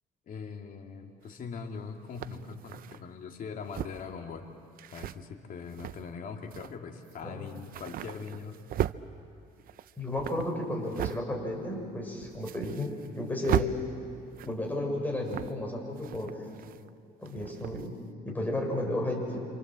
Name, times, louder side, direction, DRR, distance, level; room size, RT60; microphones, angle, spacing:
voice 1, 0.3-4.5 4.9-8.6 18.3-18.6, left 5 dB, 55° left, 3 dB, 2.8 m, -41 dB
sound 1, 1.3-1.4 2.1-3.0 3.6-4.1 4.8-5.2 5.7-6.1 6.5-6.7 7.1-7.2 7.5-9.0 9.5-11.2 11.6-11.8 12.2-13.2 13.4-13.7 14.3-14.7 15.3-15.7 16.0-16.9 17.3-17.9, right 12 dB, 60° right, 0.7 m, -36 dB
voice 2, 10.0-13.7 14.4-16.4 17.2-17.9 18.2-19.5, left 1 dB, 10° left, 0 dB, 6.6 m, -33 dB
28.0 x 27.0 x 7.8 m, 2.5 s
cardioid pair, 110°, 17 cm